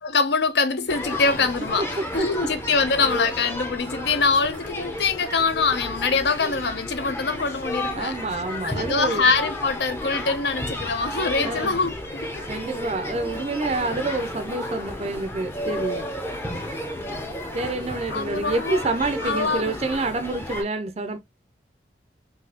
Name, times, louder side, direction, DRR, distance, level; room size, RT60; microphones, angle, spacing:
voice 1, 0.0-8.1 8.6-12.5 18.1-18.9 19.2-19.8, left 4 dB, 65° left, 0.6 m, -24 dB
sound 1, 0.9-20.6, left 1 dB, 10° left, 0.6 m, -32 dB
voice 2, 2.2-2.5 7.9-9.3 11.4-11.8 12.5-16.1 17.5-21.2, right 2 dB, 35° right, 0.4 m, -28 dB
3.9 x 2.7 x 2.8 m
head